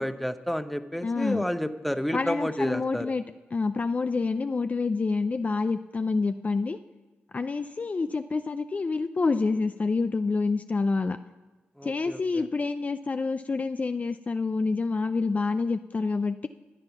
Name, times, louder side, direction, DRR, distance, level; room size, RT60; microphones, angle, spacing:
voice 1, 0.0-3.1 11.8-12.4, equal, ahead, 10 dB, 0.7 m, -30 dB
voice 2, 1.0-1.4 2.1-3.2 3.5-6.8 7.3-11.2 11.8-16.5, left 4 dB, 35° left, 10 dB, 0.4 m, -27 dB
13.5 x 8.9 x 5.8 m, 1.2 s
cardioid pair, 65°, 4 cm